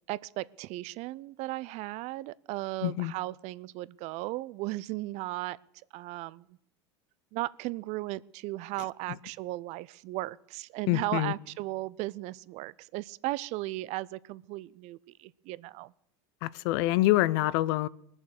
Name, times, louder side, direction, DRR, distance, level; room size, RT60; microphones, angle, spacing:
voice 1, 0.1-5.6 5.9-6.6 7.3-15.9, right 19 dB, 50° right, 0.5 m, -36 dB
voice 2, 2.8-3.1 10.9-11.3 16.4-17.9, left 17 dB, 65° left, 0.5 m, -26 dB
20.5 x 7.2 x 6.6 m
hypercardioid pair, 95°, 14 cm